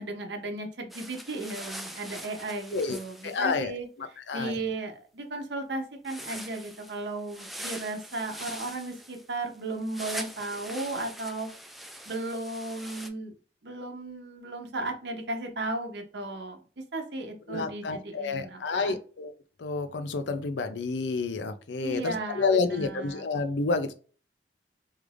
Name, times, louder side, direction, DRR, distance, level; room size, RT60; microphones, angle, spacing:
voice 1, 0.0-3.9 4.3-11.5 12.1-13.3 13.6-16.6 16.9-18.9 21.8-23.2, right 2 dB, 70° right, 4 dB, 0.8 m, -35 dB
sound 1, 0.9-3.5 6.0-13.1, equal, ahead, 0.3 m, -43 dB
voice 2, 3.2-4.6 17.5-19.3 19.6-23.9, left 4 dB, 90° left, 9 dB, 0.5 m, -29 dB
3.2 x 2.5 x 3.3 m, 0.39 s
head